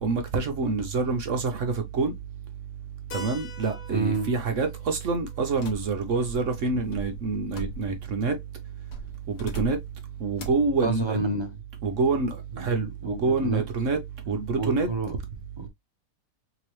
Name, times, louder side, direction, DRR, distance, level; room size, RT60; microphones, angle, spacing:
voice 1, 0.0-2.1 3.1-8.4 9.3-9.8 10.2-11.2 11.8-14.0 14.3-14.9, right 4 dB, 55° right, 1.0 m, -26 dB
Keyboard (musical), 3.1-7.6, left 3 dB, 55° left, 1.0 m, -47 dB
voice 2, 3.9-4.3 10.8-11.5 12.6-13.6 14.6-15.1 15.6-15.7, right 3 dB, 30° right, 0.5 m, -29 dB
sound 1, 5.6-8.2 8.9-10.0 10.4-10.7, right 4 dB, 80° left, 1.6 m, -40 dB
3.7 x 3.0 x 3.0 m
omnidirectional pair, 1.8 m